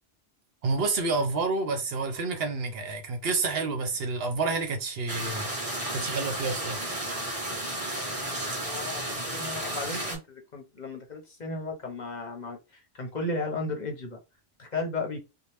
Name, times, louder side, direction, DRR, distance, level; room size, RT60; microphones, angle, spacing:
voice 1, 0.6-5.5 5.9-6.8, right 3 dB, 70° right, 0.9 m, -29 dB
sound 1, 5.1-10.2, right 1 dB, 35° right, 1.1 m, -33 dB
voice 2, 8.1-14.2 14.6-15.2, left 2 dB, 50° left, 0.7 m, -35 dB
2.8 x 2.0 x 3.2 m
omnidirectional pair, 1.1 m